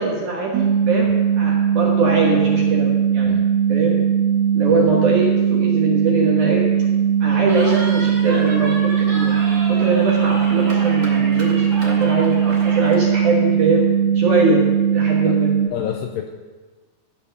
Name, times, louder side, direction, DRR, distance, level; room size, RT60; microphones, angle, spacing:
voice 1, 0.0-3.3 3.7-4.0 4.5-6.7 7.2-13.9 14.1-14.6 14.9-15.5, right 2 dB, 65° right, -3 dB, 2.1 m, -22 dB
sound 1, 0.5-15.7, right 8 dB, 80° right, 2.4 m, -19 dB
Cheering, 7.5-13.0, right 1 dB, 35° right, 2.3 m, -32 dB
voice 2, 15.7-16.3, left 9 dB, 85° left, 4 dB, 2.4 m, -28 dB
15.0 x 6.0 x 6.7 m, 1.3 s
omnidirectional pair, 5.4 m